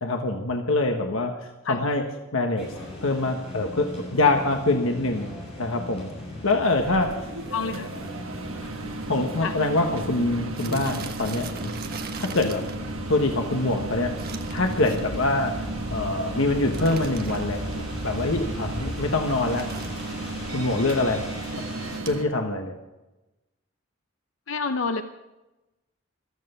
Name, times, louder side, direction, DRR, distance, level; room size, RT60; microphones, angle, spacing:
voice 1, 0.0-1.3 1.6-2.0 2.3-2.7 3.0-5.3 5.6-6.1 6.4-7.1 9.1-11.8 12.2-12.6 13.1-14.2 14.5-19.7 20.5-21.2 22.1-22.8, left 2 dB, 85° left, 3 dB, 1.3 m, -24 dB
sound 1, 2.6-22.0, left 1 dB, 30° left, 7.2 m, -37 dB
sound 2, 5.2-5.5 6.2-6.3 6.5-6.6 6.8-7.1 7.5-7.6 7.9-8.0 8.8-8.9 9.1-9.3 9.6-9.7 10.6-12.8 14.2-15.3 16.7-17.7 19.3-20.3 21.9-22.2, right 5 dB, 50° right, 1.3 m, -40 dB
sound 3, 6.6-22.2, right 3 dB, 90° right, 1.2 m, -36 dB
voice 2, 7.5-7.9 9.4-9.6 24.5-25.0, left 4 dB, 70° left, 8 dB, 0.7 m, -28 dB
15.0 x 13.5 x 5.6 m, 1.0 s
head